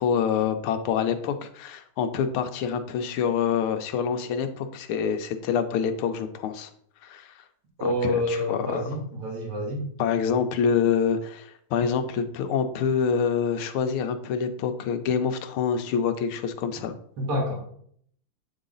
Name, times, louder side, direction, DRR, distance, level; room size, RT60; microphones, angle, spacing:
voice 1, 0.0-6.7 7.0-7.3 7.8-8.9 10.0-17.0, left 7 dB, 80° left, 8 dB, 1.5 m, -26 dB
voice 2, 7.8-9.8 17.2-17.6, left 1 dB, 85° right, -3 dB, 2.9 m, -27 dB
8.3 x 4.0 x 3.8 m, 0.65 s
omnidirectional pair, 2.4 m